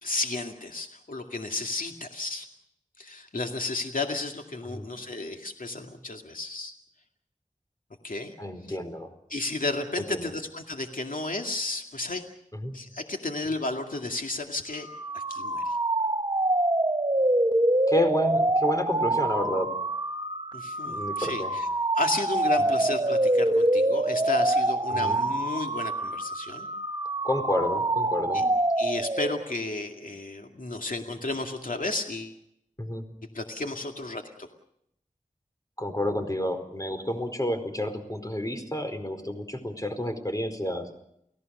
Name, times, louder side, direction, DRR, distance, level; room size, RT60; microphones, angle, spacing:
voice 1, 0.0-2.5 3.0-6.7 8.0-8.3 8.7-8.8 9.3-12.2 12.7-14.9 15.1-15.8 20.5-21.7 22.0-26.7 28.3-28.5 28.8-32.3 33.3-34.5, left 2 dB, 80° left, 3 dB, 2.3 m, -33 dB
voice 2, 8.4-9.1 10.1-10.3 12.5-12.8 17.9-19.7 20.8-21.5 24.9-25.2 27.2-28.4 32.8-33.0 35.8-40.9, left 1 dB, 25° left, 7 dB, 4.5 m, -30 dB
sound 1, 14.8-29.5, right 1 dB, 30° right, 1.3 m, -26 dB
30.0 x 17.5 x 6.7 m, 0.74 s
wide cardioid pair, 45°, 14 cm